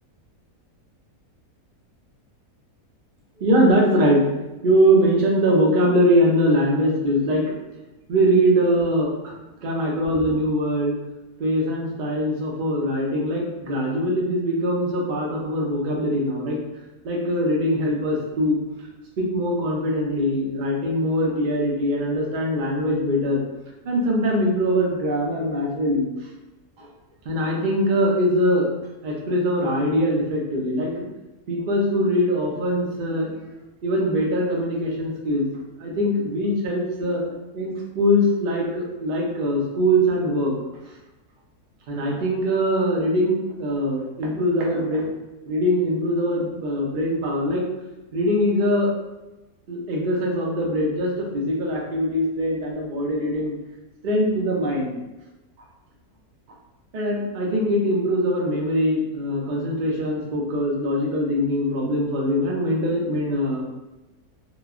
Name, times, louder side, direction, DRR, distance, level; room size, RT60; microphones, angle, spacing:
voice 1, 3.4-4.2 4.6-7.5 8.1-9.3 9.6-11.0 11.4-16.6 17.0-18.6 19.2-23.4 23.9-26.0 26.8-26.9 27.2-28.7 29.0-31.1 31.5-35.4 35.8-40.5 41.9-45.1 45.5-47.6 48.1-48.9 49.7-53.5 54.0-54.9 56.9-63.6, equal, 85° right, -2 dB, 0.4 m, -22 dB
2.9 x 2.2 x 2.3 m, 1.0 s
omnidirectional pair, 1.6 m